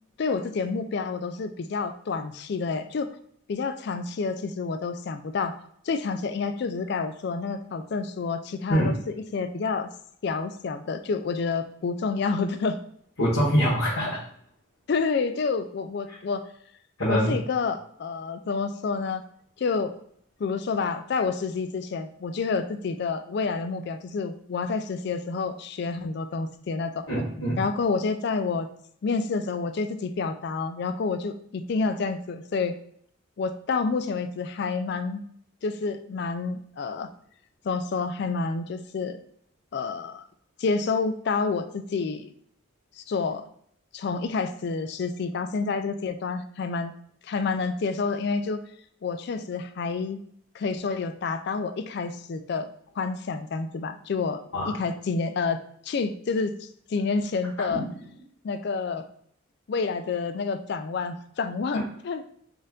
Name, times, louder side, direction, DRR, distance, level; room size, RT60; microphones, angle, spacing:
voice 1, 0.2-3.1 3.5-5.6 5.9-9.9 10.2-12.8 14.9-16.4 17.1-19.2 19.6-19.9 20.4-27.1 27.6-28.7 29.0-32.8 33.4-35.2 35.6-37.1 37.6-39.2 39.7-40.2 40.6-42.3 43.0-43.5 43.9-46.9 47.2-48.6 49.0-50.2 50.5-52.7 53.0-57.8 58.4-59.1 59.7-62.3, left 4 dB, 50° left, 9 dB, 0.3 m, -29 dB
voice 2, 13.2-14.2 17.0-17.3 27.1-27.6 54.5-54.6 57.7-57.8, equal, 85° left, -8 dB, 1.3 m, -24 dB
4.4 x 2.5 x 3.6 m, 0.65 s
head